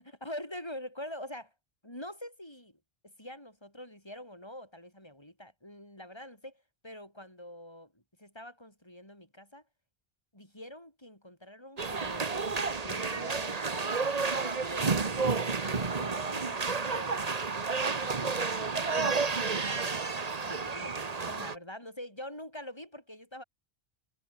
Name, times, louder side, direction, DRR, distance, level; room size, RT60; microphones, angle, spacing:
voice 1, 0.2-1.5 1.8-2.8 3.0-9.6 10.3-12.3 12.8-13.9 14.2-17.2 17.9-20.0 20.4-21.0 21.3-23.4, left 1 dB, 25° left, 5.4 m, -45 dB
sound 1, 11.8-21.5, right 4 dB, 40° right, 1.3 m, -31 dB
omnidirectional pair, 1.0 m